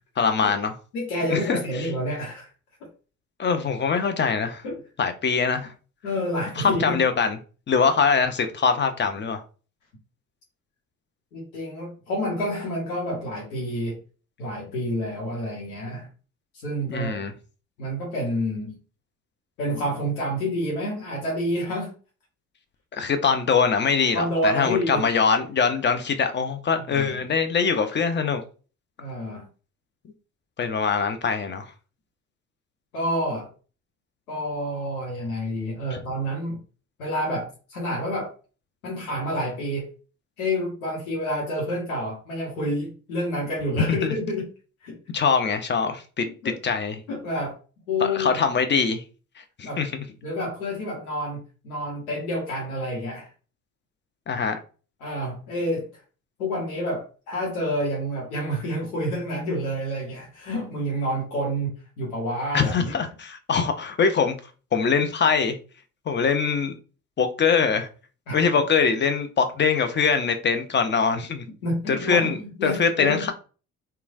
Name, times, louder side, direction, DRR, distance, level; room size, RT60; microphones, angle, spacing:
voice 1, 0.2-0.7 1.3-1.9 3.4-4.6 5.0-5.7 6.6-7.4 7.7-9.4 16.9-17.3 22.9-28.4 30.6-31.7 35.9-36.0 43.9-44.1 45.1-46.3 46.6-47.0 48.0-49.0 49.6-50.0 54.3-54.6 62.5-64.3 64.7-65.6 66.1-66.8 67.2-67.9 68.3-71.4 71.9-73.3, left 5 dB, 25° left, 0.5 m, -23 dB
voice 2, 0.9-2.5 4.6-4.8 6.0-7.0 11.3-14.0 14.4-16.1 16.6-17.1 17.8-18.8 19.6-21.9 24.1-25.0 26.9-27.2 29.0-29.4 32.9-33.5 34.3-36.6 37.0-38.3 38.8-39.9 40.4-44.4 44.8-45.0 46.2-46.6 47.1-47.6 47.9-48.3 49.6-49.8 50.2-53.3 55.0-55.9 56.4-61.7 62.0-62.9 68.3-68.4 71.6-73.2, equal, 80° left, 0.9 m, -28 dB
3.0 x 2.2 x 2.4 m
hypercardioid pair, 50°, 42 cm